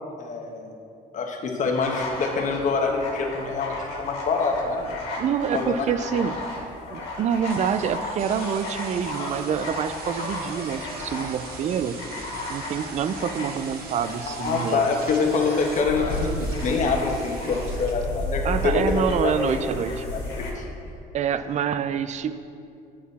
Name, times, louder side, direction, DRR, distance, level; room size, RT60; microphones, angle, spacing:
voice 1, 0.2-0.7 1.1-4.8 5.5-5.7 14.3-19.5 20.1-20.6, left 4 dB, 45° left, 2 dB, 1.2 m, -25 dB
sound 1, 1.6-20.5, left 2 dB, 80° left, 1.7 m, -34 dB
voice 2, 5.2-6.4 6.9-12.0 12.5-14.8 18.4-20.1 21.1-22.4, right 8 dB, 45° right, 12 dB, 0.4 m, -26 dB
sound 2, 7.5-17.9, right 3 dB, 65° right, 1.1 m, -41 dB
8.3 x 6.2 x 4.1 m, 2.5 s
cardioid pair, 110°, 17 cm